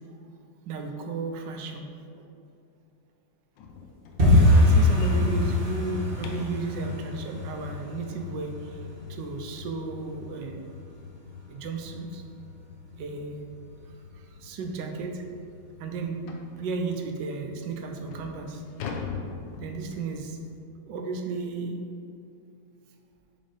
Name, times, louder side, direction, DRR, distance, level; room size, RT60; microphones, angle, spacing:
voice 1, 0.7-1.9 2.1-2.2 4.2-8.8 9.1-10.8 11.5-12.2 13.0-13.4 14.1-15.2 15.8-16.2 16.5-18.6 19.6-20.4 20.9-21.8, right 4 dB, 80° right, 4 dB, 1.3 m, -34 dB
sound 1, 3.6-6.7 9.5-9.6 10.1-10.2 10.6-10.7 11.2-11.3 12.4-12.5 12.9-13.1 13.7-13.8 14.2-14.3 14.8-14.9 16.3-16.6 17.3-17.4 17.9-20.2, left 4 dB, 85° left, 1.3 m, -40 dB
sound 2, 4.2-14.9 15.2-16.4 16.7-17.1 17.4-17.5 18.0-18.5 18.8-18.9 19.4-19.5, left 1 dB, 35° right, 1.3 m, -26 dB
4.9 x 4.1 x 4.9 m, 2.4 s
omnidirectional pair, 2.0 m